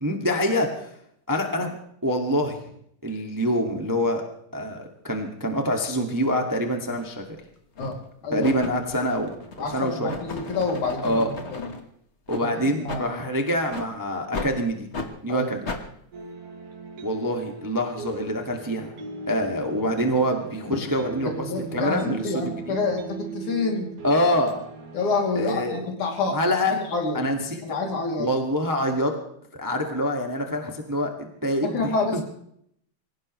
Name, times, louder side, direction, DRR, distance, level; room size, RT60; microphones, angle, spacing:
voice 1, 0.0-0.9 1.3-2.6 3.0-4.2 4.5-7.2 8.3-10.1 11.0-11.3 12.3-14.8 15.2-15.7 17.0-18.9 19.3-22.7 24.0-24.5 25.3-25.9 26.3-26.8 27.1-27.8 28.2-29.1 29.5-31.1 31.4-31.7, equal, 10° right, 3 dB, 1.3 m, -25 dB
sound 1, 6.9-7.1 7.8-8.1 8.4-11.8 12.3-12.4 12.9-13.0 13.7-13.9 14.3-14.5 14.9-15.1 15.7-15.8, left 3 dB, 40° left, 0.9 m, -35 dB
voice 2, 9.6-11.2 11.5-11.7 12.4-12.5 12.7-13.2 15.3-15.5 21.2-23.9 24.9-26.4 26.7-27.2 27.6-28.3 31.6-32.2, left 3 dB, 75° left, 1 dB, 4.4 m, -27 dB
sound 2, 16.1-25.6, right 4 dB, 90° right, 4.0 m, -39 dB
25.5 x 16.5 x 3.2 m, 0.70 s
omnidirectional pair, 3.5 m